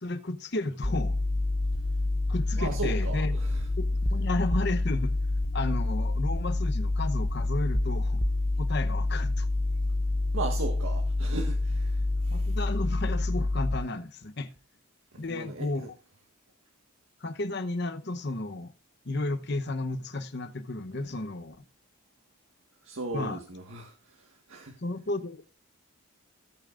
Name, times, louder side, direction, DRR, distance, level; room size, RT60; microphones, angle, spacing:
voice 1, 0.0-1.2 2.3-3.3 3.8-5.2 5.5-8.2 8.6-9.5 12.3-14.5 15.2-15.9 17.2-18.7 19.0-21.6 23.1-23.4 24.8-25.5, left 2 dB, 55° left, 0.9 m, -33 dB
sound 1, 0.8-13.8, left 2 dB, 25° left, 0.7 m, -27 dB
voice 2, 2.6-3.7 10.3-12.6 15.1-15.9 22.8-24.8, right 3 dB, 70° right, 1.6 m, -37 dB
16.5 x 8.7 x 2.5 m
head